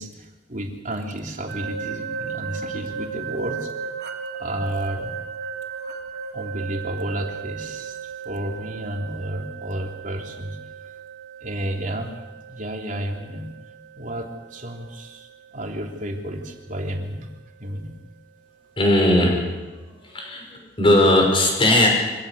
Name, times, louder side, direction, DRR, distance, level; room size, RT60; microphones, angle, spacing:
voice 1, 0.0-3.9 4.4-5.1 6.3-10.9 11.4-12.1 12.5-13.5 14.0-15.3 15.5-17.3 17.6-17.9, right 1 dB, 45° right, 2 dB, 3.2 m, -31 dB
sound 1, 1.5-16.3, right 6 dB, 80° right, 2.5 m, -36 dB
voice 2, 18.8-19.4 19.9-21.9, left 1 dB, 30° left, 1 dB, 6.0 m, -18 dB
25.0 x 16.0 x 8.6 m, 1.2 s
head